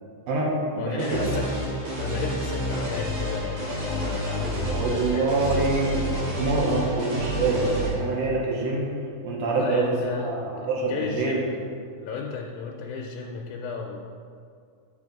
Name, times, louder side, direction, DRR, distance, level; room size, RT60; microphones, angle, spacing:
voice 1, 0.3-1.3 4.7-6.0 6.4-8.9 9.2-9.8 10.1-11.4, right 3 dB, 70° right, -3 dB, 2.0 m, -25 dB
voice 2, 0.8-1.5 2.0-5.7 9.6-10.3 10.6-11.7 12.0-14.0, left 5 dB, 85° left, 0 dB, 2.0 m, -34 dB
sound 1, 1.0-7.9, equal, 90° right, 3.5 m, -29 dB
7.9 x 3.5 x 5.1 m, 2.3 s
omnidirectional pair, 3.5 m